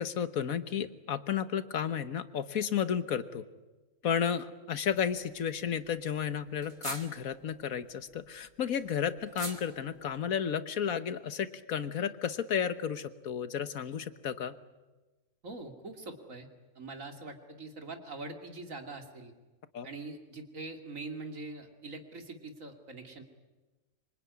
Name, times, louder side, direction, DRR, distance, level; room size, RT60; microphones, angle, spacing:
voice 1, 0.0-3.4 4.0-14.5 19.7-19.9, left 8 dB, 80° left, 13 dB, 1.6 m, -32 dB
sound 1, 4.7-5.1 5.4-5.5 5.7-5.8 6.0-6.1 6.6-7.5 8.1-10.3, right 2 dB, 40° right, 2.5 m, -44 dB
voice 2, 15.4-16.5 16.7-19.3 19.8-23.2, right 3 dB, 70° right, 5 dB, 3.0 m, -43 dB
25.5 x 24.5 x 9.6 m, 1.2 s
omnidirectional pair, 1.4 m